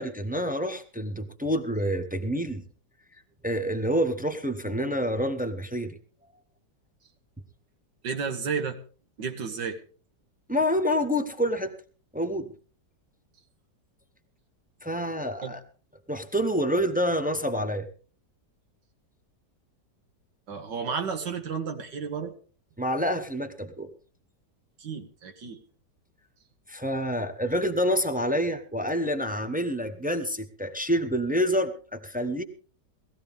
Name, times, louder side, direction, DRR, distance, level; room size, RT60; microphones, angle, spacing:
voice 1, 0.0-2.6 3.4-6.0 10.5-11.7 12.1-12.5 14.8-15.6 16.1-17.9 22.8-23.9 26.7-32.4, equal, 10° right, 5 dB, 0.4 m, -27 dB
voice 2, 8.0-8.8 9.2-9.8 15.4-15.6 20.5-22.3 24.8-25.6, right 6 dB, 80° right, 5 dB, 1.9 m, -32 dB
18.5 x 14.5 x 3.5 m, 0.39 s
omnidirectional pair, 1.9 m